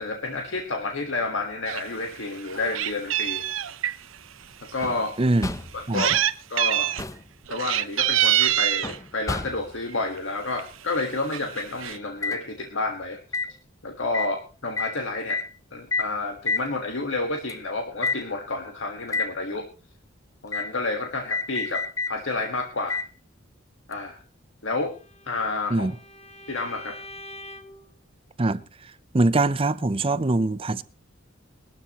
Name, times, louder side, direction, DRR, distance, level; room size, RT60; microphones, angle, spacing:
voice 1, 0.0-3.7 4.7-5.2 5.7-6.1 6.5-6.9 7.5-13.2 13.8-15.4 15.7-19.7 20.4-23.0 23.9-24.2 24.6-24.9 25.3-25.9 26.5-27.0, left 3 dB, 70° left, 1.5 m, -30 dB
Meow, 1.7-1.8 2.2-4.0 4.7-4.8 5.7-6.3 6.6-7.0 7.5-9.0 9.9-10.2 10.6-10.7 10.9-11.0 11.3-12.0, right 12 dB, 75° right, 0.7 m, -24 dB
sound 1, 4.8-5.1 5.4-5.8 6.7-7.3 8.8-9.8 12.2-12.4 13.3-13.5 14.1-14.3 14.8-15.0 15.3-15.5 15.9-16.2 16.5-16.7 17.5-17.6 18.0-18.2 19.1-19.3 20.5-20.7 21.3-22.2 22.9-23.1 23.9-24.0, left 3 dB, 15° left, 0.6 m, -29 dB
voice 2, 5.2-5.5 5.9-6.0 25.7-25.9 28.4-28.6 29.1-30.8, right 2 dB, 30° right, 0.5 m, -22 dB
Bowed string instrument, 24.8-27.9, left 1 dB, 30° left, 1.8 m, -44 dB
20.5 x 13.0 x 2.9 m
head